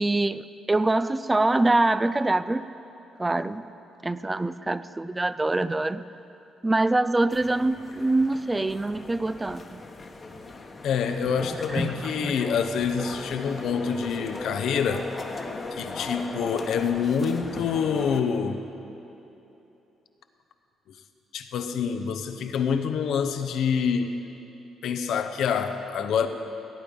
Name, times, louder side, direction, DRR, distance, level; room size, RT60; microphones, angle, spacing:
voice 1, 0.0-2.7 3.2-3.6 4.0-6.0 6.6-9.8 11.7-12.3, right 2 dB, 15° right, 14 dB, 0.3 m, -24 dB
sound 1, 7.3-18.2, left 3 dB, 35° left, 1.1 m, -38 dB
voice 2, 10.8-15.1 15.7-18.6 21.3-24.1 24.8-26.3, left 6 dB, 75° left, 7 dB, 0.8 m, -26 dB
17.0 x 8.9 x 5.3 m, 3.0 s
cardioid pair, 90°, 0 cm